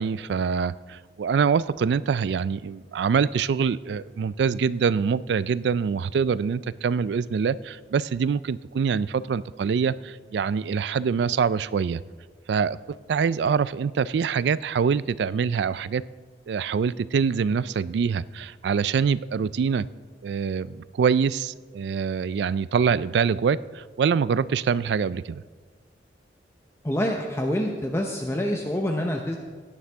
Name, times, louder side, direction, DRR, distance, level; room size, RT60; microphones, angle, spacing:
voice 1, 0.0-12.0 12.5-16.0 16.5-19.9 20.2-25.4, right 6 dB, 65° right, 18 dB, 0.3 m, -25 dB
voice 2, 26.8-29.4, equal, 15° left, 2 dB, 0.7 m, -26 dB
16.5 x 9.9 x 3.5 m, 1.5 s
head